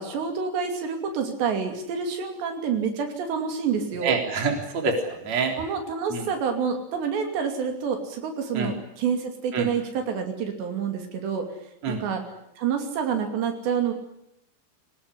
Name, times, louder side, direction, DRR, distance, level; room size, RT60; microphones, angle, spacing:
voice 1, 0.0-4.2 5.6-11.5 11.9-12.2 12.6-13.9, right 6 dB, 80° right, 5 dB, 4.9 m, -28 dB
voice 2, 4.0-5.6 6.1-6.3 8.5-8.7 9.5-9.7 11.8-12.0, right 4 dB, 40° right, 3 dB, 4.5 m, -26 dB
24.5 x 19.5 x 10.0 m, 0.81 s
omnidirectional pair, 5.0 m